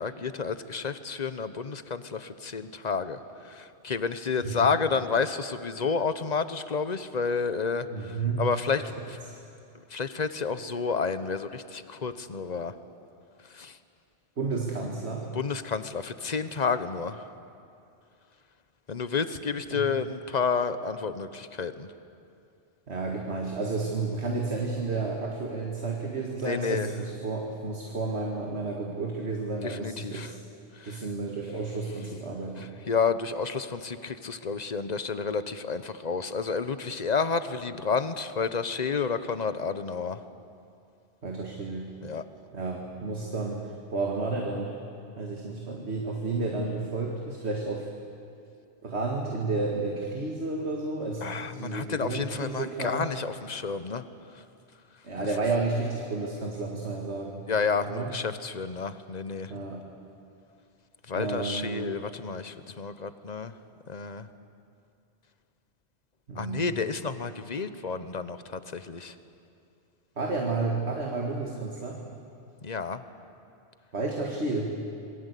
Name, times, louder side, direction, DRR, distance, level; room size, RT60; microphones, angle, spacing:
voice 1, 0.0-9.2 9.9-12.7 13.5-13.8 15.3-17.2 18.9-21.9 26.4-26.9 29.6-30.3 30.7-31.1 32.6-40.2 42.0-42.2 51.2-54.0 55.2-55.3 57.5-59.5 61.1-63.5 63.9-64.3 66.4-69.1 72.6-73.0, left 5 dB, 40° left, 12 dB, 1.0 m, -30 dB
voice 2, 4.4-4.8 7.9-8.4 14.4-15.3 19.7-19.8 22.9-30.4 30.8-32.7 41.2-41.9 42.5-44.8 45.2-47.9 48.8-53.1 55.0-57.4 57.8-58.1 59.5-59.8 61.2-61.9 66.3-66.7 70.2-72.0 73.9-74.7, right 3 dB, 70° right, 1 dB, 2.3 m, -31 dB
27.0 x 21.5 x 8.4 m, 2.5 s
omnidirectional pair, 1.2 m